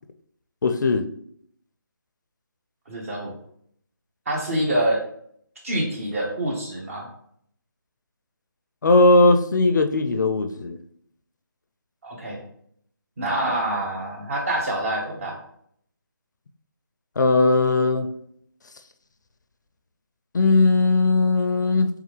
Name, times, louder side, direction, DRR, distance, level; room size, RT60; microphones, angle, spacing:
voice 1, 0.6-1.1 8.8-10.8 17.2-18.1 20.3-21.9, left 2 dB, 55° left, 8 dB, 0.4 m, -18 dB
voice 2, 2.9-3.3 4.3-5.0 5.6-7.1 12.0-12.4 13.2-15.4, right 1 dB, 40° right, -1 dB, 1.2 m, -26 dB
3.5 x 3.2 x 3.2 m, 0.66 s
figure-of-eight pair, 160°, 12 cm